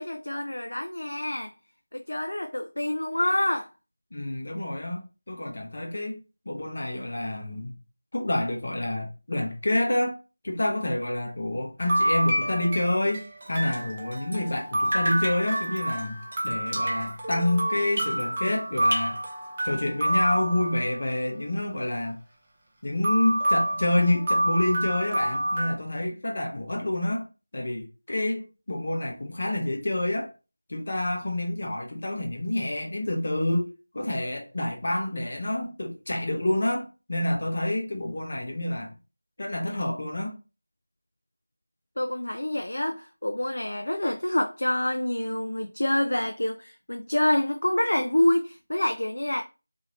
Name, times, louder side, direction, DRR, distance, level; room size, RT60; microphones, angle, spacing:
voice 1, 0.0-1.5 1.9-3.7 42.0-49.4, left 1 dB, 85° left, 0.4 m, -27 dB
voice 2, 4.1-7.7 8.1-10.2 10.4-19.2 19.6-22.2 22.8-27.3 27.5-30.3 30.7-38.9 39.4-40.4, left 1 dB, 40° left, 0.8 m, -28 dB
sound 1, 11.8-21.2 23.0-25.7, right 1 dB, 15° right, 0.4 m, -28 dB
Drip, 13.4-14.6 14.8-18.6 18.8-19.9, right 1 dB, 30° right, 0.8 m, -35 dB
2.8 x 2.7 x 3.0 m
figure-of-eight pair, 175°, 0 cm